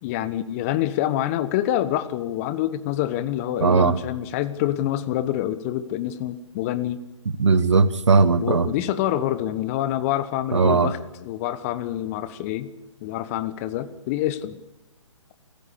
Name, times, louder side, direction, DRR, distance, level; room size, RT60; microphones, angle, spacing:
voice 1, 0.0-7.0 8.4-12.7 13.0-14.6, left 12 dB, 25° left, 13 dB, 1.2 m, -26 dB
voice 2, 3.6-4.0 7.4-8.7 10.5-10.9, right 4 dB, 65° right, 12 dB, 1.8 m, -18 dB
27.0 x 15.0 x 8.4 m, 0.97 s
figure-of-eight pair, 135°, 16 cm